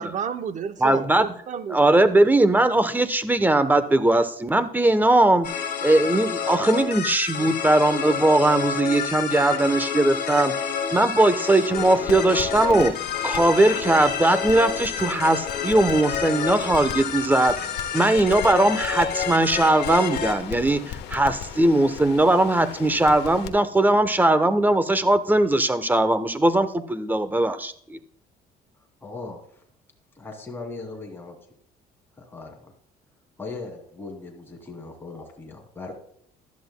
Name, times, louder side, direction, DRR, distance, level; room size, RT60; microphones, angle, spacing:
voice 1, 0.0-2.1, right 7 dB, 45° right, 0.8 m, -31 dB
voice 2, 0.8-1.3 1.7-5.5 5.8-10.6 10.9-12.9 13.2-28.0, right 2 dB, 10° right, 0.9 m, -20 dB
sound 1, 5.4-20.3, left 7 dB, 60° left, 2.3 m, -29 dB
Crackle, 11.7-23.5, left 10 dB, 90° left, 1.1 m, -38 dB
voice 3, 29.0-29.4 30.2-31.4 32.2-32.7 33.4-35.9, left 3 dB, 15° left, 2.5 m, -38 dB
15.5 x 11.5 x 2.2 m
cardioid pair, 110°, 17 cm